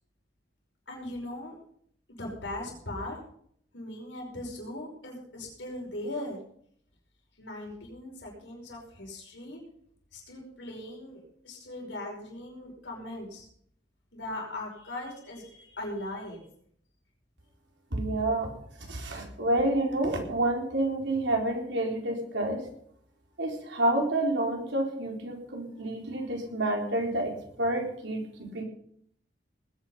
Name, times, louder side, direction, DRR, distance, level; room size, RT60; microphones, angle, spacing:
voice 1, 0.9-1.6 2.1-3.2 3.7-6.4 7.4-9.6 10.1-13.5 14.1-16.4, left 1 dB, 85° left, -1 dB, 5.5 m, -39 dB
voice 2, 17.9-18.5 18.9-22.6 23.4-27.3 27.6-28.6, right 1 dB, 80° right, 1 dB, 4.1 m, -29 dB
19.5 x 9.4 x 5.6 m, 0.65 s
head